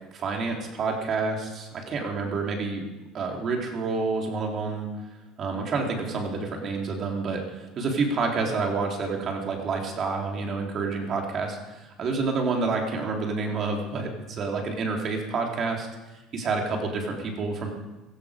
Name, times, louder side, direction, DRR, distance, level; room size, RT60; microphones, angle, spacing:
voice 1, 0.1-2.8 3.1-4.9 5.4-17.7, right 4 dB, 40° right, 1 dB, 3.5 m, -28 dB
16.0 x 14.5 x 5.2 m, 1.1 s
cardioid pair, 125°, 0 cm